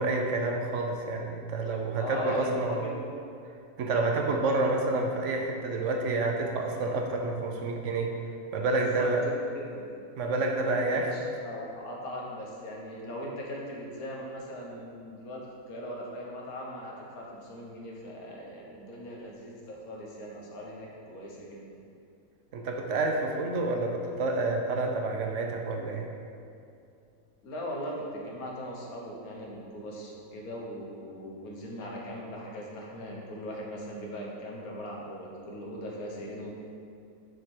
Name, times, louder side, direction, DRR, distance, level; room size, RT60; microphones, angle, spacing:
voice 1, 0.0-2.8 3.8-9.2 10.2-11.1 22.5-26.1, right 2 dB, 65° right, 2 dB, 1.0 m, -29 dB
voice 2, 2.0-3.1 8.7-9.1 9.5-9.8 10.6-15.4 15.7-21.7 27.4-36.6, equal, 90° left, -2 dB, 1.6 m, -39 dB
6.6 x 4.9 x 4.5 m, 2.5 s
omnidirectional pair, 1.5 m